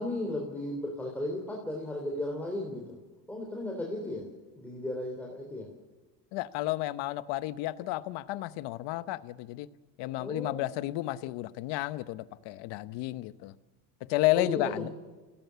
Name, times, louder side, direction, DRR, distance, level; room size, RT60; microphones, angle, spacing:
voice 1, 0.0-3.0 3.3-4.2 4.6-5.7 10.0-10.6 14.3-14.9, left 1 dB, 5° left, -1 dB, 3.5 m, -35 dB
voice 2, 6.3-9.7 10.0-13.5 14.0-14.9, left 17 dB, 65° left, 15 dB, 1.0 m, -32 dB
29.5 x 17.5 x 7.0 m, 1.3 s
cardioid pair, 155°, 46 cm